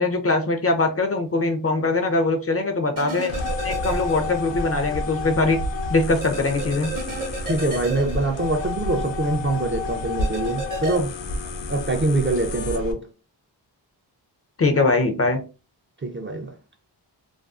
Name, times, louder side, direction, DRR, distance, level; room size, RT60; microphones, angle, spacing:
voice 1, 0.0-3.3 3.6-5.6 5.9-6.9 14.6-15.4, left 3 dB, 35° left, 0.4 m, -22 dB
sound 1, 3.0-4.6 5.0-5.1 6.2-9.0 10.2-11.0, right 1 dB, 45° right, 0.8 m, -33 dB
sound 2, 3.3-12.9, left 2 dB, 80° left, 0.6 m, -30 dB
voice 2, 7.5-11.2 11.7-13.1 16.0-16.5, right 2 dB, 30° right, 0.4 m, -24 dB
2.4 x 2.3 x 2.3 m
wide cardioid pair, 75°, 44 cm